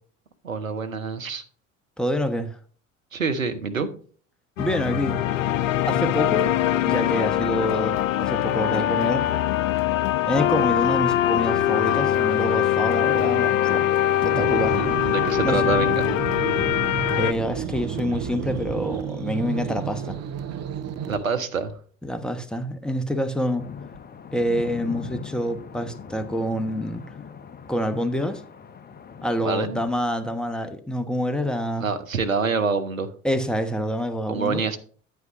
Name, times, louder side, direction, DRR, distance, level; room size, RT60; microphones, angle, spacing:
voice 1, 0.4-1.4 3.1-3.9 14.6-16.1 21.1-21.7 29.4-29.8 31.8-33.1 34.3-34.8, right 5 dB, 90° right, 0.8 m, -26 dB
voice 2, 2.0-2.6 4.6-5.2 5.9-6.5 6.9-9.2 10.3-13.9 14.2-14.8 15.4-15.6 17.1-20.2 22.0-23.6 24.3-27.0 27.7-28.4 29.2-31.9 33.2-34.6, equal, ahead, 1.1 m, -27 dB
sound 1, 4.6-17.3, left 12 dB, 75° left, 0.6 m, -22 dB
sound 2, 14.3-21.2, right 7 dB, 40° right, 0.8 m, -31 dB
sound 3, 23.6-29.3, left 6 dB, 25° left, 0.8 m, -40 dB
9.3 x 8.2 x 3.0 m
figure-of-eight pair, 60°, 39 cm